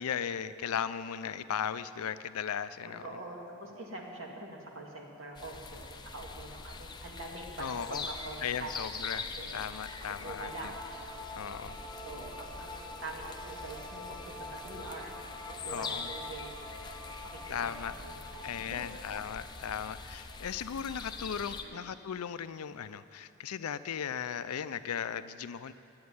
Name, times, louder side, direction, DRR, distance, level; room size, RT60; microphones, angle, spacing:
voice 1, 0.0-3.2 7.6-8.1 8.4-9.3 9.5-10.7 11.4-11.8 15.7-16.1 17.5-17.9 18.4-25.7, left 8 dB, 90° left, 13 dB, 0.5 m, -37 dB
voice 2, 2.8-8.7 9.0-9.7 10.0-10.7 11.6-11.8 12.0-16.5 17.3-17.7 18.0-19.0 21.6-21.9, right 2 dB, 60° right, -1 dB, 2.0 m, -45 dB
sound 1, 5.3-21.6, left 4 dB, 20° left, 0.5 m, -44 dB
sound 2, 9.7-20.8, left 1 dB, 45° right, 3.6 m, -47 dB
10.5 x 8.7 x 9.6 m, 2.8 s
head